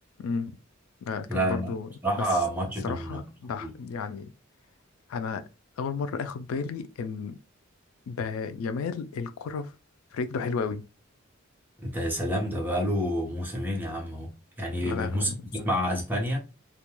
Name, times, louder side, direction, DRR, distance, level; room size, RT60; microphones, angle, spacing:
voice 1, 0.2-0.6 1.0-1.9 2.2-2.3 2.8-4.3 5.1-5.4 5.8-7.4 8.1-9.7 10.1-10.9 14.8-15.3, left 5 dB, 85° left, 0.3 m, -33 dB
voice 2, 1.3-1.7 2.0-3.2 3.6-3.7 11.8-14.3 14.6-16.4, equal, 10° right, 0.7 m, -28 dB
2.3 x 2.2 x 3.0 m
head